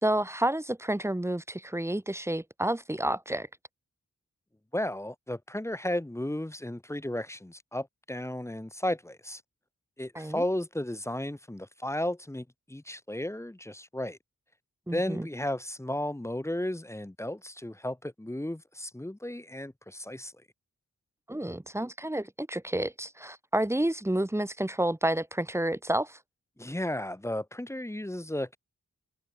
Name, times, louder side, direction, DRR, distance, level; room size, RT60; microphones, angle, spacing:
voice 1, 0.0-3.5 10.1-10.4 14.9-15.3 21.3-26.2, right 1 dB, 10° right, 1.5 m, -30 dB
voice 2, 4.7-9.4 10.0-14.2 14.9-20.3 26.6-28.6, left 1 dB, 10° left, 1.3 m, -34 dB
wide cardioid pair, 145°, 31 cm